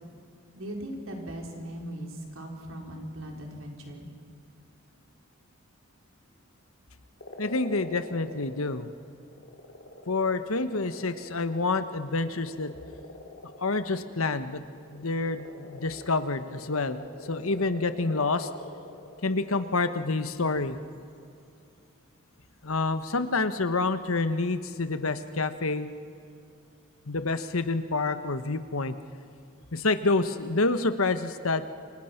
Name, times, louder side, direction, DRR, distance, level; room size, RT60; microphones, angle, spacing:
voice 1, 0.5-4.1, equal, 70° right, 1 dB, 4.5 m, -39 dB
sound 1, 7.2-8.9 9.2-19.8, left 1 dB, 65° left, 3.3 m, -45 dB
voice 2, 7.4-8.9 10.1-12.7 13.6-14.6 14.9-18.5 19.2-20.8 22.6-25.9 27.1-28.9 29.7-31.7, left 3 dB, 85° left, 10 dB, 1.3 m, -28 dB
29.5 x 25.5 x 6.0 m, 2.5 s
head